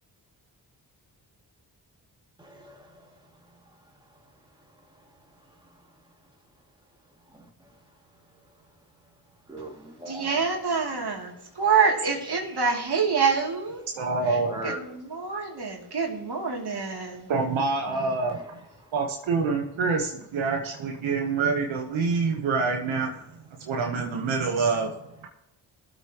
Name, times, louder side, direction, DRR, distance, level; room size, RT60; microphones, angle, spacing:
voice 1, 2.4-3.1 7.3-7.5 9.5-10.4 12.3-12.7 14.4-14.8 17.9-18.1, right 1 dB, 10° right, 0 dB, 2.5 m, -39 dB
voice 2, 10.1-13.8 14.6-17.3, right 5 dB, 55° right, 0 dB, 3.0 m, -26 dB
voice 3, 13.9-14.7 17.3-18.6 18.9-25.3, right 4 dB, 80° right, 2 dB, 1.3 m, -27 dB
19.0 x 8.1 x 3.0 m, 0.88 s
supercardioid pair, 45°, 46 cm